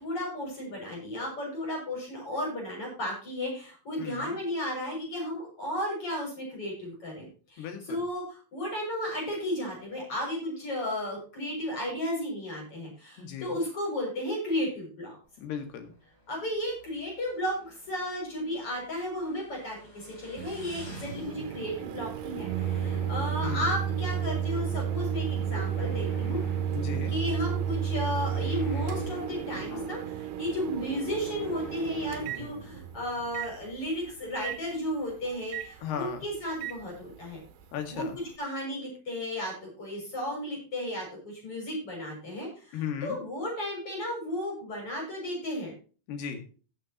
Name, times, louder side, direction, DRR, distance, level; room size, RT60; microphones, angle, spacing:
voice 1, 0.0-15.2 16.3-26.4 27.1-37.4 37.9-45.7, left 1 dB, 35° left, -1 dB, 7.4 m, -34 dB
voice 2, 4.0-4.4 7.6-8.0 13.2-13.6 15.4-15.9 23.4-23.6 26.7-27.1 35.8-36.2 37.7-38.2 42.7-43.2 46.1-46.4, left 8 dB, 85° left, 6 dB, 3.8 m, -36 dB
Motorcycle, 15.2-23.5, left 2 dB, 15° left, 3.9 m, -52 dB
Microwave oven, 20.4-32.9 33.4-33.5 34.4-34.6 35.5-35.7 36.6-36.8, right 9 dB, 75° right, 2.2 m, -32 dB
sound 1, 21.8-33.6, left 4 dB, 60° left, 3.7 m, -46 dB
16.5 x 8.7 x 3.0 m, 0.36 s
omnidirectional pair, 4.6 m